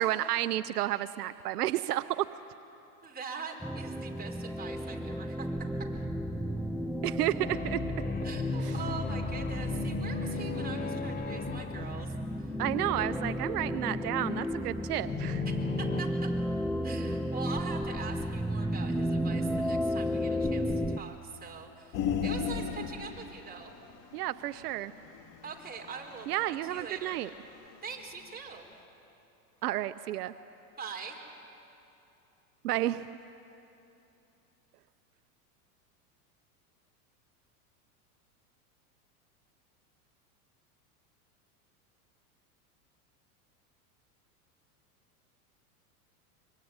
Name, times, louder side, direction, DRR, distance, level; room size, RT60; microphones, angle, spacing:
voice 1, 0.0-2.3 7.0-7.8 8.6-8.7 12.6-15.4 24.1-24.9 26.3-27.3 29.6-30.3 32.6-33.1, right 14 dB, 80° right, 13 dB, 0.8 m, -31 dB
voice 2, 3.0-5.5 8.2-12.6 15.4-16.1 16.8-23.7 25.4-27.2 27.8-28.6 30.8-31.2, right 5 dB, 20° right, 1 dB, 4.5 m, -43 dB
sound 1, 3.6-21.0, equal, ahead, 0.6 m, -33 dB
sound 2, 7.4-12.9 15.0-16.0, left 6 dB, 20° left, 1.0 m, -37 dB
sound 3, 21.9-27.8 28.1-28.2, left 7 dB, 40° left, 3.0 m, -35 dB
24.5 x 23.5 x 9.7 m, 2.8 s
hypercardioid pair, 115°, 45 cm